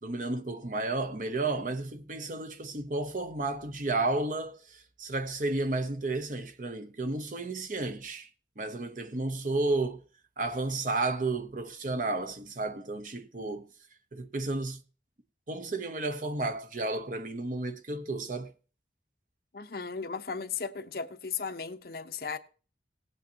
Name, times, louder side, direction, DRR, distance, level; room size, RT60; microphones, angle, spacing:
voice 1, 0.0-8.3 8.6-10.1 10.4-13.7 14.1-14.8 15.5-18.5, right 2 dB, 45° right, 0.8 m, -32 dB
voice 2, 19.5-22.4, left 5 dB, 55° left, 0.7 m, -36 dB
18.0 x 8.2 x 2.8 m
head